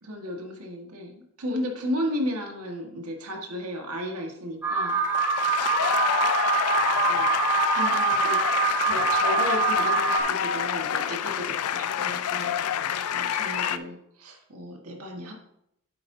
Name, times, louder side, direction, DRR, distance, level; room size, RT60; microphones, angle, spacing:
voice 1, 0.0-5.0 7.0-7.3 7.7-8.4 8.8-12.5 13.1-15.3, left 1 dB, 90° right, 1 dB, 1.7 m, -34 dB
Alarm, 4.6-10.2, right 6 dB, 10° right, 0.8 m, -25 dB
sound 1, 4.9-13.8, left 8 dB, 85° left, 0.4 m, -27 dB
8.6 x 7.8 x 2.7 m, 0.76 s
head